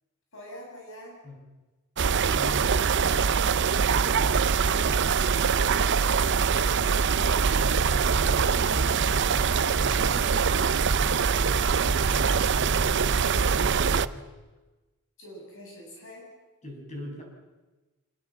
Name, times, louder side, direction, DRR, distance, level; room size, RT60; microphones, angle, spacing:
voice 1, 0.3-1.2 7.1-9.3 9.8-10.9 11.4-11.9 12.2-14.0 15.2-16.3, equal, 60° left, -1 dB, 7.4 m, -46 dB
voice 2, 2.0-3.6 3.8-5.6 16.6-17.2, left 1 dB, 35° left, 1 dB, 7.0 m, -41 dB
sound 1, 2.0-14.1, right 6 dB, 55° right, 0.7 m, -23 dB
sound 2, 7.3-14.2, equal, 20° right, 6.8 m, -40 dB
26.0 x 20.5 x 7.6 m, 1.2 s
head